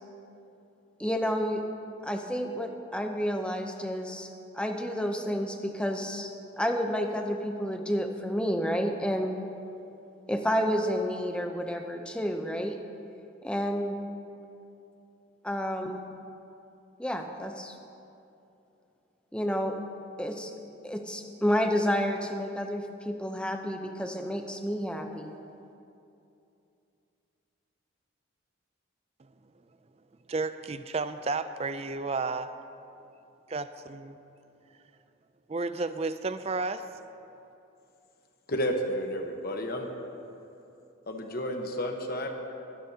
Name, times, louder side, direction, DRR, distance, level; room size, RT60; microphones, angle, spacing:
voice 1, 1.0-1.6 2.0-4.3 4.5-6.3 6.6-9.3 10.3-12.8 13.4-14.0 15.4-16.0 17.0-17.7 19.3-19.8 20.2-20.5 20.8-25.3, equal, 5° left, 4 dB, 0.7 m, -30 dB
voice 2, 30.3-32.5 33.5-34.2 35.5-36.9, right 3 dB, 30° right, 11 dB, 0.4 m, -32 dB
voice 3, 38.5-39.9 41.1-42.3, equal, 45° left, 2 dB, 1.2 m, -31 dB
24.0 x 10.0 x 2.9 m, 2.7 s
head